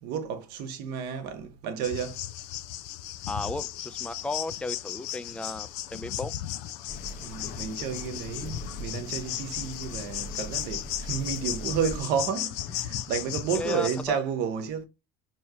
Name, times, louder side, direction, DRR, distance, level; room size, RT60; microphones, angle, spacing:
voice 1, 0.0-2.2 7.2-14.9, right 7 dB, 70° right, 0.9 m, -31 dB
sound 1, 1.8-14.0, left 13 dB, 75° left, 0.4 m, -36 dB
voice 2, 3.3-6.3 13.5-14.2, left 2 dB, 5° left, 0.4 m, -34 dB
sound 2, 6.9-12.0, left 1 dB, 50° left, 0.9 m, -41 dB
4.6 x 2.9 x 2.7 m
hypercardioid pair, 75°, 17 cm